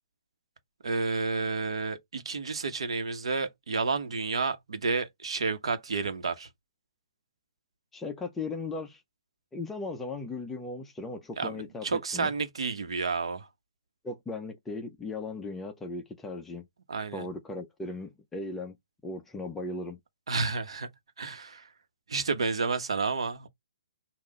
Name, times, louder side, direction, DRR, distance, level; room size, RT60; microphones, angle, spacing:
voice 1, 0.8-6.5 11.4-13.5 16.9-17.3 20.3-20.9 21.2-21.7 22.1-23.5, right 4 dB, 80° right, 1.1 m, -30 dB
voice 2, 7.9-9.0 9.5-12.3 14.0-16.7 17.1-18.8 19.0-20.0, left 3 dB, 5° left, 0.4 m, -37 dB
5.8 x 2.4 x 3.6 m
hypercardioid pair, 175°, 3 cm